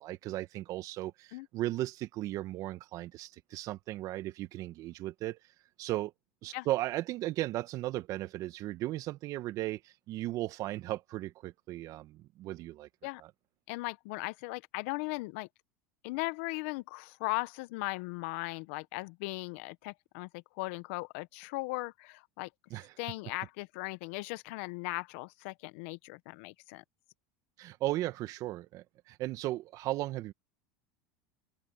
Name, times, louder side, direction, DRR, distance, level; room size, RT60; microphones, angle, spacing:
voice 1, 0.0-5.4 5.8-6.1 6.4-12.9 13.2-13.3 22.7-23.0 27.6-30.3, right 16 dB, 50° right, 1.5 m, -36 dB
voice 2, 13.7-15.5 16.0-22.5 23.0-26.8, left 24 dB, 70° left, 1.1 m, -38 dB
open air
hypercardioid pair, 95°, 7 cm